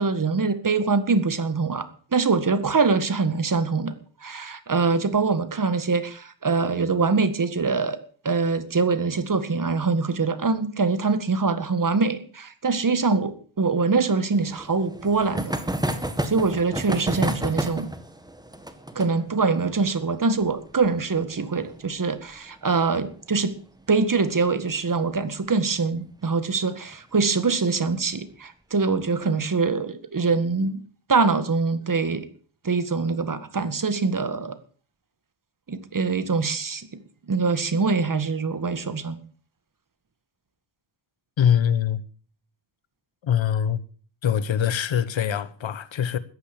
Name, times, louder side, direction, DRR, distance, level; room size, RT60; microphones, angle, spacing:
voice 1, 0.0-3.9 4.2-8.0 8.3-15.6 16.2-17.9 19.0-23.6 23.9-30.8 31.1-32.3 32.6-34.6 35.7-36.9 37.3-39.2, right 4 dB, 45° right, 1.9 m, -24 dB
sound 1, 14.3-23.5 23.8-23.9 24.1-24.2 24.5-24.6 26.0-26.3 26.9-27.4, right 1 dB, 10° right, 1.9 m, -32 dB
voice 2, 41.4-42.0 43.2-43.8 44.2-46.2, left 9 dB, 85° left, 1.2 m, -23 dB
14.0 x 10.5 x 7.1 m
wide cardioid pair, 85°, 45 cm